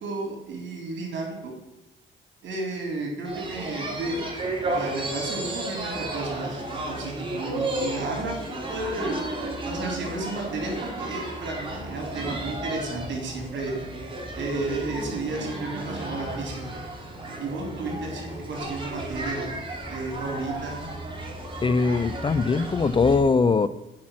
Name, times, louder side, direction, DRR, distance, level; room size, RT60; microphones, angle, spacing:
voice 1, 0.0-1.5 2.4-4.2 4.7-8.3 8.7-9.2 9.6-13.8 14.4-16.7 17.4-19.5 19.9-20.8, right 3 dB, 65° right, -1 dB, 3.5 m, -32 dB
sound 1, 3.2-23.2, right 1 dB, 25° right, 2.4 m, -33 dB
voice 2, 21.6-23.7, left 4 dB, 25° left, 14 dB, 0.4 m, -21 dB
8.6 x 5.9 x 6.2 m, 0.98 s
cardioid pair, 90°, 20 cm